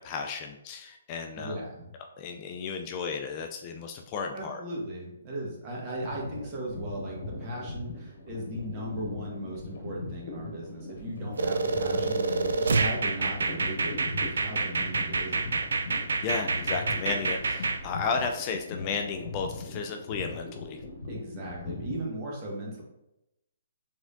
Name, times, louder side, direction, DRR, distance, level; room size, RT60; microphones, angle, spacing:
voice 1, 0.0-1.6 2.2-4.6 16.2-20.8, left 5 dB, 30° left, 3 dB, 0.4 m, -33 dB
voice 2, 1.4-1.9 4.3-15.6 21.1-22.8, right 1 dB, 30° right, -3 dB, 1.4 m, -37 dB
sound 1, 5.9-22.0, left 3 dB, 65° left, 1.0 m, -40 dB
sound 2, 11.4-17.8, right 3 dB, 75° right, 0.4 m, -28 dB
4.8 x 3.5 x 2.6 m, 0.90 s
hypercardioid pair, 135°, 0 cm